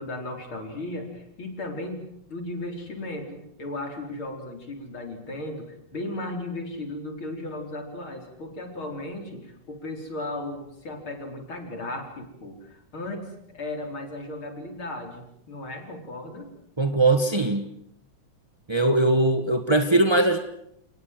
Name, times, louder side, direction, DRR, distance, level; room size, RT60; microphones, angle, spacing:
voice 1, 0.0-16.5, left 2 dB, 45° left, 4 dB, 4.9 m, -36 dB
voice 2, 16.8-17.7 18.7-20.4, right 2 dB, 20° right, 7 dB, 0.7 m, -20 dB
30.0 x 19.5 x 7.7 m, 0.76 s
omnidirectional pair, 3.3 m